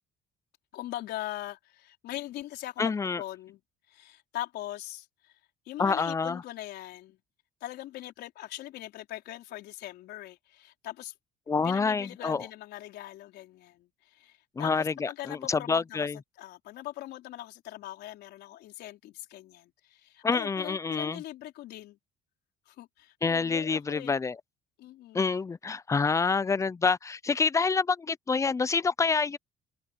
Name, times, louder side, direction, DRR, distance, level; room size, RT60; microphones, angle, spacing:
voice 1, 0.7-3.6 3.9-5.3 5.7-7.2 7.6-11.1 11.6-16.1 16.4-22.0 22.7-24.2 24.8-25.3, left 14 dB, 80° left, 4.5 m, -41 dB
voice 2, 2.8-3.2 5.8-6.4 11.5-12.5 14.6-16.2 20.2-21.2 23.2-24.4 25.1-29.4, left 4 dB, 20° left, 0.5 m, -27 dB
cardioid pair, 110°, 17 cm